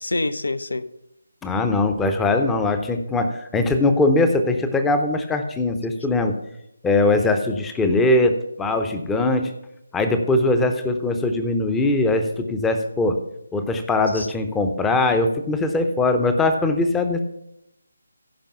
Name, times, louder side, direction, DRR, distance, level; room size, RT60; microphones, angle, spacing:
voice 1, 0.0-0.8 14.1-14.3, left 2 dB, 65° left, 15 dB, 0.7 m, -26 dB
voice 2, 1.4-6.4 6.8-9.5 9.9-13.2 13.5-17.2, left 2 dB, 5° left, 7 dB, 0.7 m, -21 dB
15.5 x 5.3 x 5.6 m, 0.80 s
figure-of-eight pair, 150°, 0 cm